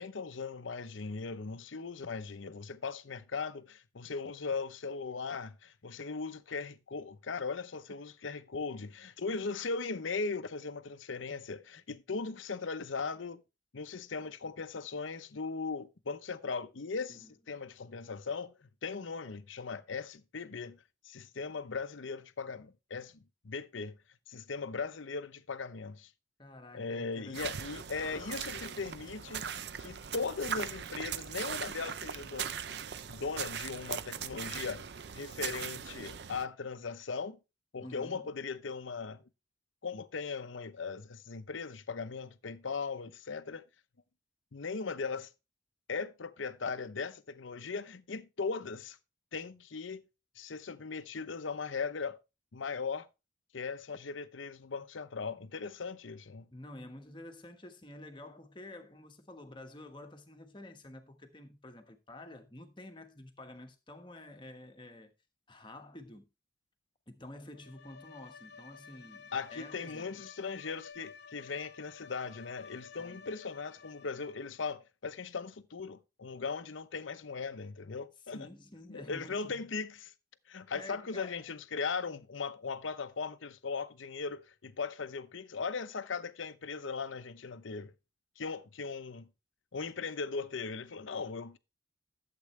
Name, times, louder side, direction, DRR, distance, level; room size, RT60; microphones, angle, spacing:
voice 1, 0.0-13.4 13.7-24.0 24.3-26.1 26.7-32.8 33.1-34.8 35.1-37.4 37.7-39.3 39.8-43.6 44.5-45.3 45.9-49.0 49.3-50.0 50.4-52.2 52.5-53.1 53.5-56.5 69.3-78.5 78.9-80.1 80.5-87.9 88.4-89.3 89.7-91.6, left 4 dB, 85° left, 0.8 m, -38 dB
voice 2, 26.4-27.5 37.8-38.3 56.5-65.1 65.5-66.3 67.1-70.2 73.0-73.3 78.3-79.6 80.7-81.4, left 1 dB, 25° left, 1.2 m, -50 dB
sound 1, 27.3-36.4, right 8 dB, 60° right, 0.5 m, -40 dB
Bowed string instrument, 67.5-74.6, left 5 dB, 55° left, 0.8 m, -52 dB
12.0 x 7.7 x 3.2 m
head